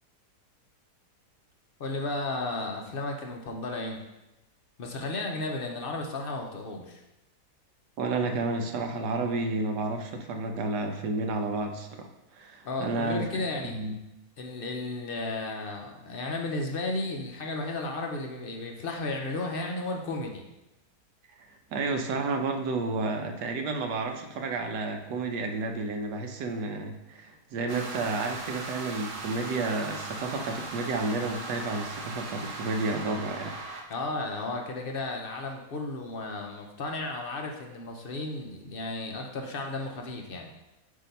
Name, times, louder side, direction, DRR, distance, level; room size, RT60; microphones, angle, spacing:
voice 1, 1.8-4.0 4.8-7.0 12.6-13.8 14.4-20.4 33.9-40.5, left 2 dB, 55° left, 2 dB, 0.6 m, -34 dB
voice 2, 8.0-13.3 13.6-14.0 21.7-33.6, right 3 dB, 85° right, 4 dB, 1.3 m, -31 dB
sound 1, 27.7-33.8, right 3 dB, 55° right, 1.2 m, -39 dB
8.4 x 2.8 x 5.2 m, 0.95 s
omnidirectional pair, 1.8 m